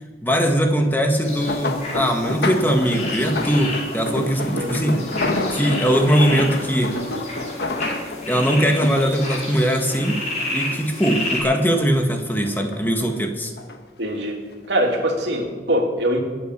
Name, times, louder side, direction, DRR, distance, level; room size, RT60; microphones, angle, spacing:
voice 1, 0.2-5.0 5.5-6.9 8.3-10.2 10.5-13.5, equal, 10° left, 3 dB, 1.5 m, -20 dB
sound 1, 1.2-10.7 11.1-12.0 12.4-13.8 14.5-14.8 15.2-15.3, left 2 dB, 70° left, 1.6 m, -29 dB
sound 2, 1.2-11.4, left 2 dB, 40° left, 5.6 m, -31 dB
voice 2, 4.5-4.9 14.0-14.4 14.7-16.2, right 1 dB, 80° right, 1 dB, 2.9 m, -23 dB
22.5 x 8.8 x 6.7 m, 1.3 s
head